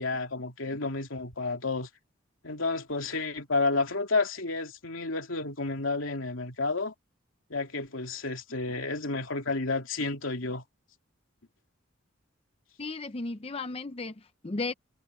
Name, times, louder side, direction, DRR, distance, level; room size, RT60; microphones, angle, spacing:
voice 1, 0.0-1.9 2.4-6.9 7.5-10.6, left 3 dB, 80° left, 2.7 m, -31 dB
voice 2, 12.8-14.7, left 3 dB, 30° left, 0.6 m, -35 dB
head